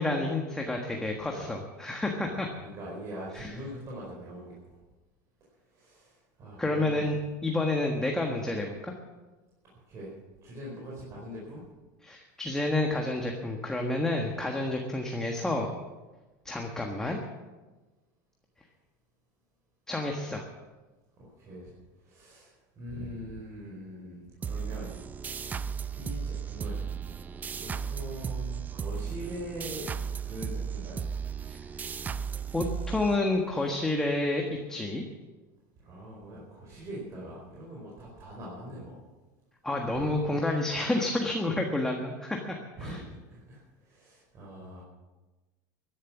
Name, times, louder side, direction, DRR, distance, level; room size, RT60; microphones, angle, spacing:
voice 1, 0.0-2.5 3.3-3.5 6.6-8.9 12.0-15.7 16.4-17.2 19.9-20.4 31.5-31.6 32.5-35.0 39.6-43.0, left 2 dB, 5° left, 1 dB, 1.5 m, -29 dB
voice 2, 2.3-4.7 5.7-7.1 9.7-10.1 10.4-11.6 21.2-21.7 22.0-25.7 25.9-26.9 27.6-29.8 30.2-31.0 35.8-39.0 39.9-40.1 42.8-43.0 43.3-44.8, equal, 35° right, -4 dB, 4.6 m, -42 dB
sound 1, 24.4-33.6, right 6 dB, 20° right, 0.5 m, -35 dB
15.0 x 11.0 x 7.2 m, 1.2 s
supercardioid pair, 150°, 9 cm